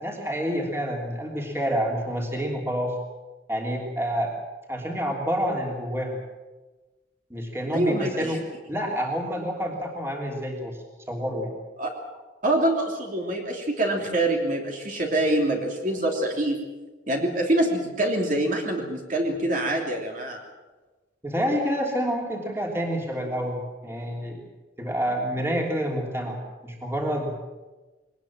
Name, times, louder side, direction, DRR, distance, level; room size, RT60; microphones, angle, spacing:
voice 1, 0.0-2.9 3.5-4.3 4.7-6.2 7.3-8.4 8.7-10.8 11.1-11.5 21.2-24.4 24.8-26.4 26.6-27.3, equal, 15° right, 0 dB, 3.2 m, -28 dB
voice 2, 7.7-8.4 11.8-11.9 12.4-16.6 17.1-20.4, right 1 dB, 45° right, 1 dB, 3.1 m, -25 dB
22.0 x 19.5 x 7.5 m, 1.2 s
head